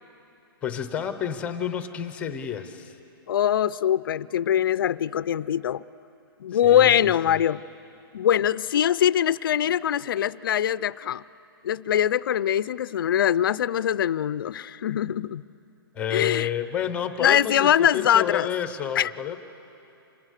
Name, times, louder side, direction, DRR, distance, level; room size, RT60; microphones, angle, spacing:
voice 1, 0.6-3.0 6.5-7.4 15.9-19.4, left 9 dB, 10° left, 10 dB, 0.7 m, -30 dB
voice 2, 3.3-5.8 6.4-7.6 8.1-11.2 11.6-15.4 16.1-16.5 17.2-18.5 19.0-19.1, left 10 dB, 60° left, 18 dB, 0.4 m, -22 dB
26.5 x 20.5 x 6.6 m, 2.8 s
hypercardioid pair, 170°, 13 cm